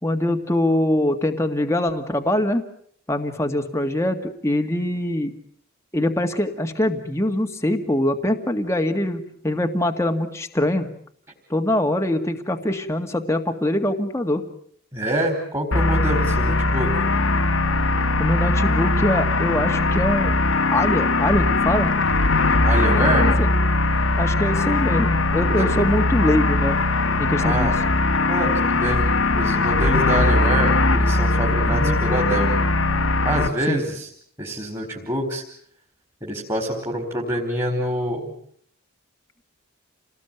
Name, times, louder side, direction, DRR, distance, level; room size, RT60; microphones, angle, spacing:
voice 1, 0.0-2.6 3.1-5.3 5.9-10.9 11.5-14.4 16.4-16.6 18.2-20.3 20.7-21.9 23.2-23.5 24.2-26.8 27.2-27.7 31.7-32.0 33.7-33.8, left 1 dB, 10° left, 4 dB, 2.0 m, -23 dB
voice 2, 14.9-17.0 22.6-23.3 25.6-25.7 27.4-27.7 28.3-32.5 33.2-34.1 34.4-35.4 36.2-38.3, right 1 dB, 15° right, 0 dB, 4.6 m, -26 dB
sound 1, 15.7-33.5, left 2 dB, 60° left, 2.0 m, -20 dB
30.0 x 19.5 x 9.3 m, 0.64 s
head